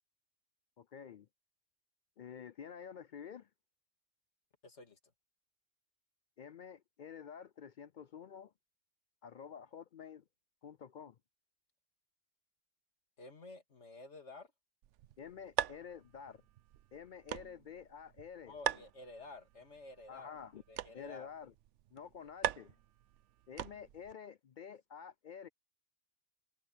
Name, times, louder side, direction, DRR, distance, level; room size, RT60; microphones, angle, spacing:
voice 1, 0.8-1.3 2.2-3.5 6.4-8.5 9.2-10.2 10.6-11.2 15.2-16.4 16.9-18.9 20.1-20.6 20.9-21.5 21.9-22.7 23.5-25.5, left 7 dB, 55° left, 0.5 m, -49 dB
voice 2, 4.6-5.0 13.2-14.5 18.5-20.3 20.7-21.3, left 3 dB, 80° left, 2.6 m, -51 dB
sound 1, 14.8-24.1, right 12 dB, 90° right, 0.9 m, -43 dB
omnidirectional pair, 1.2 m